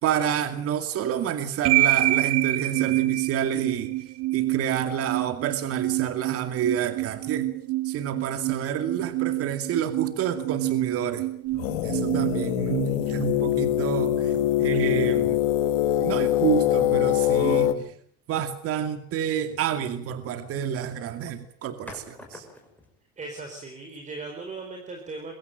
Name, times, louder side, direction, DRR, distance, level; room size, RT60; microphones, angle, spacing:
voice 1, 0.0-4.0 4.3-7.5 7.8-11.3 11.5-15.4 16.0-18.0 18.3-22.5, right 9 dB, 45° right, 9 dB, 2.3 m, -29 dB
sound 1, 1.6-13.7, right 17 dB, 60° right, 2.5 m, -27 dB
sound 2, 11.6-17.7, left 13 dB, 80° left, 2.0 m, -23 dB
sound 3, 17.9-18.2 20.3-20.7 21.9-23.0, left 2 dB, 5° left, 5.8 m, -46 dB
voice 2, 23.2-25.3, right 3 dB, 25° right, 3 dB, 4.5 m, -38 dB
23.0 x 16.0 x 9.1 m, 0.63 s
supercardioid pair, 125°, 31 cm